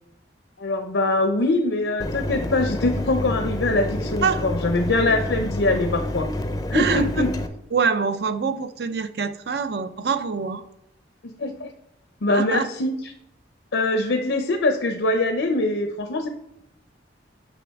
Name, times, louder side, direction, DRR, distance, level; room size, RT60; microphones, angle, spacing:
voice 1, 0.6-6.3 6.7-7.3 11.2-11.7 12.2-13.1 13.7-16.3, left 2 dB, 80° left, 5 dB, 0.6 m, -23 dB
Mechanisms, 2.0-7.5, left 1 dB, 20° left, 0.5 m, -28 dB
voice 2, 6.7-7.0 7.7-10.6 12.3-12.7, right 5 dB, 60° right, 11 dB, 0.5 m, -24 dB
9.1 x 6.0 x 3.5 m, 0.82 s
head